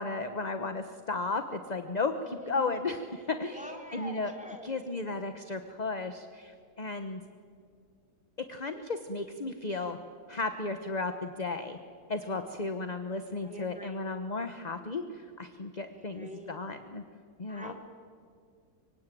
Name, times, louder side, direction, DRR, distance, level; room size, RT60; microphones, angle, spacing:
voice 1, 0.0-3.6 3.9-4.3 4.6-7.2 8.4-10.0 10.3-11.8 12.1-17.0 17.4-17.7, left 3 dB, 30° left, 8 dB, 1.1 m, -34 dB
voice 2, 2.2-2.8 3.5-4.8 12.2-12.4 13.4-14.0 15.9-16.6 17.5-17.7, equal, 5° right, 2 dB, 3.3 m, -45 dB
25.0 x 24.5 x 9.2 m, 2.2 s
omnidirectional pair, 1.7 m